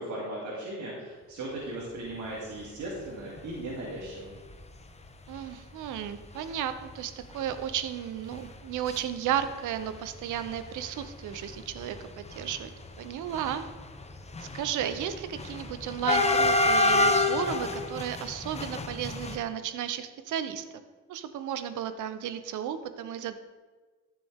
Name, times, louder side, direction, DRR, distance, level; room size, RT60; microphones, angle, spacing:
voice 1, 0.0-4.3, right 1 dB, 65° right, -6 dB, 2.9 m, -37 dB
sound 1, 3.4-3.6 4.1-4.2 4.4-4.5 5.3-5.4 5.8-6.0 6.3-6.4 6.8-9.0 9.3-10.0 10.3-19.4, left 2 dB, 20° left, 0.9 m, -29 dB
voice 2, 5.3-12.7 13.0-13.7 14.4-20.6 21.1-23.3, right 10 dB, 80° right, 11 dB, 0.8 m, -34 dB
14.0 x 6.8 x 3.6 m, 1.3 s
cardioid pair, 90°, 30 cm